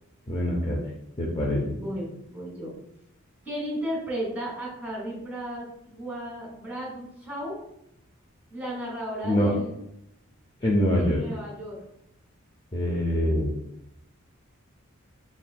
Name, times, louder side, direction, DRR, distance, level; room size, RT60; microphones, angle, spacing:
voice 1, 0.3-0.8 1.2-1.8 9.2-9.5 10.6-11.2 12.7-13.6, equal, 20° left, -3 dB, 0.5 m, -24 dB
voice 2, 1.8-2.7 3.4-7.5 8.5-9.7 11.0-11.8, right 1 dB, 10° right, -2 dB, 1.4 m, -34 dB
4.3 x 3.5 x 2.2 m, 0.79 s
head